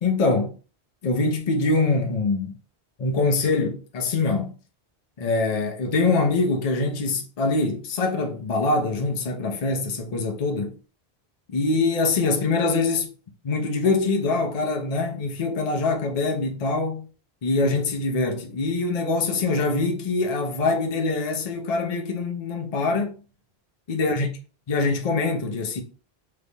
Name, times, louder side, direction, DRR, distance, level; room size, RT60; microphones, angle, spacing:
voice 1, 0.0-0.5 1.0-2.6 3.0-4.5 5.2-10.7 11.5-13.1 13.4-17.1 17.4-23.1 23.9-24.3 24.7-25.8, left 3 dB, 45° left, 0.7 m, -24 dB
3.9 x 3.3 x 2.2 m
omnidirectional pair, 1.1 m